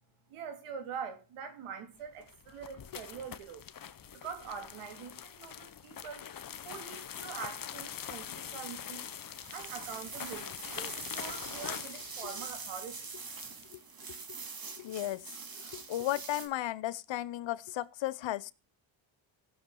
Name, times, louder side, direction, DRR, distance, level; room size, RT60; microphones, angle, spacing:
voice 1, 0.3-3.6 4.1-6.3 6.6-9.0 9.5-13.1, right 7 dB, 85° right, 2.7 m, -44 dB
sound 1, 2.1-13.8, left 9 dB, 40° left, 1.0 m, -44 dB
sound 2, 8.9-16.5, right 5 dB, 45° right, 2.5 m, -44 dB
voice 2, 14.8-15.2 15.5-18.5, left 14 dB, 65° left, 0.8 m, -35 dB
17.0 x 6.9 x 3.8 m
cardioid pair, 85°, 50 cm